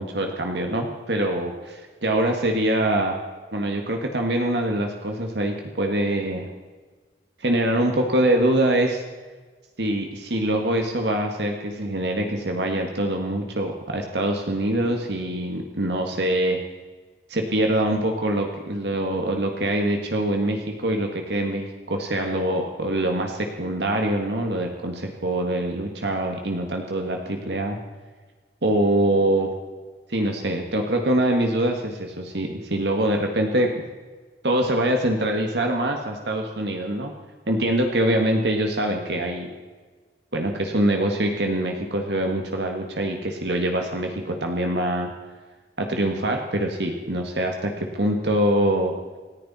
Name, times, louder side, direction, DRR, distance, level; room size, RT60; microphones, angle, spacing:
voice 1, 0.0-3.2 3.5-6.5 7.4-9.0 9.8-16.6 17.3-27.8 28.6-29.5 30.1-33.8 34.4-37.1 37.5-39.5 40.3-45.1 45.8-48.9, right 1 dB, 75° right, 3 dB, 1.8 m, -24 dB
28.0 x 10.0 x 4.3 m, 1.4 s
head